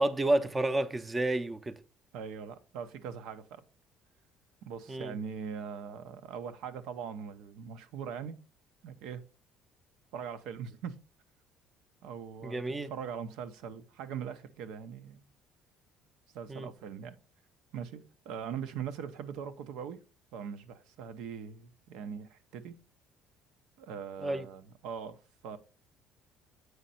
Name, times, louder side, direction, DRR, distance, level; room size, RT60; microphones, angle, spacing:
voice 1, 0.0-1.8 4.9-5.1 12.4-12.9 16.5-16.7 24.2-24.5, right 2 dB, 15° right, 0.6 m, -30 dB
voice 2, 2.1-3.6 4.6-8.4 8.8-9.2 10.1-10.9 12.0-15.3 16.3-17.2 17.7-20.0 20.3-22.7 23.8-25.6, right 7 dB, 80° right, 0.9 m, -41 dB
8.0 x 5.2 x 4.2 m
cardioid pair, 130°, 0 cm